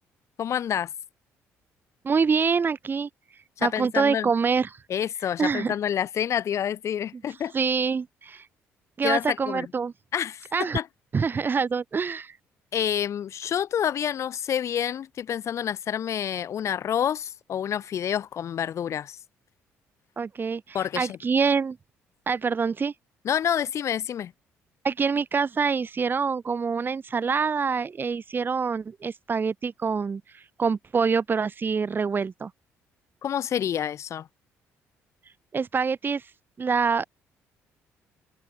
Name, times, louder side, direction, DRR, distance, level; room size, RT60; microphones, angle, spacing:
voice 1, 0.4-0.9 3.6-4.3 4.9-7.5 9.0-9.7 10.1-10.5 10.7-10.9 12.7-19.2 20.7-21.2 23.2-24.3 33.2-34.3, left 9 dB, 60° left, 2.7 m, -28 dB
voice 2, 2.0-3.1 3.6-4.8 5.4-5.7 7.5-8.5 9.0-9.9 10.5-10.8 11.1-12.4 20.2-21.8 22.3-22.9 24.8-32.5 35.5-36.3 36.6-37.0, right 5 dB, 40° right, 2.9 m, -25 dB
supercardioid pair, 75°, 6 cm